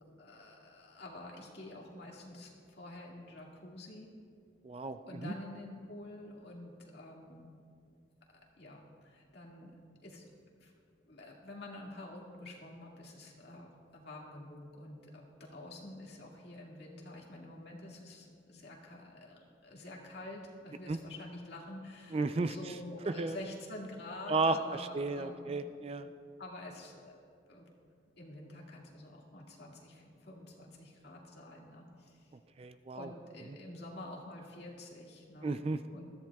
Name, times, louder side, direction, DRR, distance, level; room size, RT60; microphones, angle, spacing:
voice 1, 0.2-4.1 5.1-7.5 8.3-9.8 10.0-10.7 11.0-25.7 26.4-27.2 27.5-27.7 28.2-32.3 32.9-35.6 35.9-36.1, left 1 dB, 60° left, -2 dB, 2.0 m, -48 dB
voice 2, 4.6-5.3 20.9-21.0 22.1-22.8 23.1-23.4 24.3-26.1 32.6-33.1 35.4-35.8, right 3 dB, 30° right, 10 dB, 0.3 m, -33 dB
20.5 x 14.0 x 2.3 m, 2.3 s
head